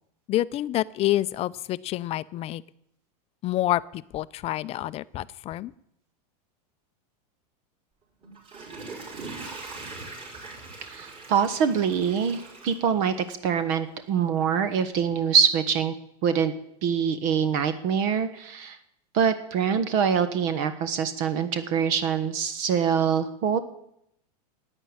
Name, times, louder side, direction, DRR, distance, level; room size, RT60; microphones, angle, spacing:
voice 1, 0.3-2.6 3.4-5.7, left 14 dB, 30° left, 17 dB, 0.5 m, -28 dB
Water / Toilet flush, 8.2-13.5 14.0-14.1, right 3 dB, 25° right, 5.8 m, -41 dB
voice 2, 10.8-16.0 16.2-16.5 16.8-18.8 19.1-23.6, right 7 dB, 55° right, 11 dB, 1.3 m, -24 dB
11.0 x 8.9 x 9.7 m, 0.76 s
supercardioid pair, 130°, 21 cm